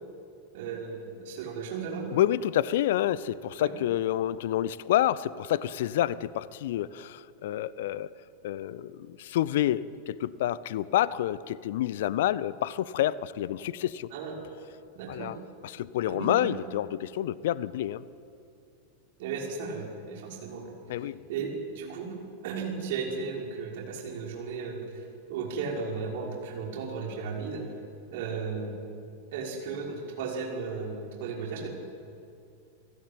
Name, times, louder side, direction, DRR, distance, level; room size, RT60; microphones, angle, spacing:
voice 1, 0.5-2.1 3.6-3.7 14.1-14.3 14.9-15.3 16.1-16.5 19.2-20.7 21.3-22.1 22.4-27.6 28.1-28.7 29.3-31.7, right 5 dB, 50° right, -1 dB, 5.9 m, -35 dB
voice 2, 2.1-8.1 8.4-14.1 15.1-15.4 15.6-18.0 20.9-21.2, left 12 dB, 55° left, 20 dB, 0.7 m, -28 dB
29.5 x 16.0 x 9.2 m, 2.5 s
figure-of-eight pair, 90°, 0 cm